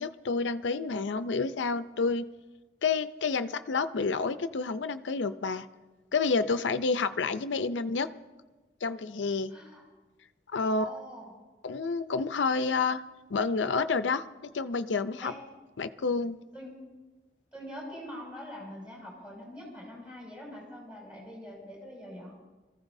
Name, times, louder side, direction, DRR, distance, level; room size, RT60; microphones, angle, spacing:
voice 1, 0.0-2.3 2.8-5.7 6.1-8.1 8.8-9.5 10.5-10.9 11.6-13.0 13.3-15.3 15.8-16.4, left 4 dB, 90° left, 12 dB, 0.5 m, -29 dB
voice 2, 9.5-9.8 10.7-11.3 15.2-15.3 16.5-16.8 17.5-22.3, equal, 5° right, -4 dB, 6.1 m, -43 dB
25.5 x 15.0 x 2.7 m, 1.2 s
head